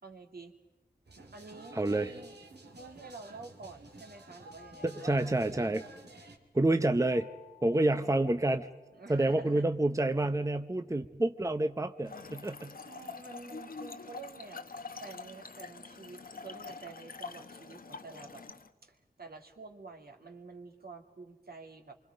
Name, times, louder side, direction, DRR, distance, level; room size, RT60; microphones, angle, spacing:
voice 1, 0.0-0.5 1.3-2.3 2.7-5.5 8.9-9.7 12.8-14.6 15.0-18.4 18.8-22.0, right 3 dB, 65° right, 3 dB, 2.6 m, -49 dB
sound 1, 1.0-6.4, right 2 dB, 90° right, 2.7 m, -52 dB
voice 2, 1.7-2.1 4.8-5.8 6.5-7.3 7.6-8.7 9.1-12.7, right 2 dB, 20° right, 9 dB, 0.8 m, -28 dB
sound 2, 7.1-9.3, left 12 dB, 80° left, 1.2 m, -58 dB
Trickle dribble / Fill (with liquid), 12.0-18.7, left 4 dB, 60° left, 1.1 m, -45 dB
27.0 x 24.5 x 5.2 m, 1.2 s
wide cardioid pair, 50°, 17 cm